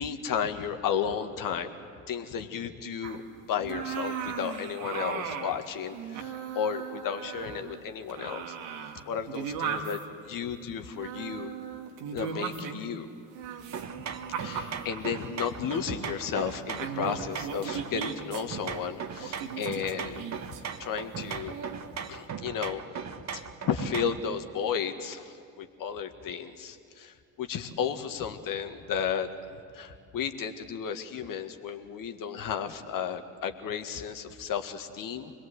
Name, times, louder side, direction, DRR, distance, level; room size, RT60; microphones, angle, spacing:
voice 1, 0.0-1.8 2.1-3.2 3.5-8.6 9.1-11.5 12.1-13.1 14.4-20.3 20.8-21.5 22.1-22.8 23.3-29.3 29.7-35.3, left 7 dB, 55° left, 7 dB, 2.0 m, -33 dB
sound 1, 3.0-3.2 3.6-5.6 5.9-7.8 8.1-10.0 11.0-12.9 13.3-15.3 15.7-15.9 16.4-16.5 16.8-18.4 19.2-20.6 21.5-21.8, right 7 dB, 75° right, 2.0 m, -37 dB
sound 2, 13.7-24.3, right 7 dB, 40° right, 1.6 m, -38 dB
26.0 x 21.0 x 8.2 m, 2.5 s
hypercardioid pair, 55°, 40 cm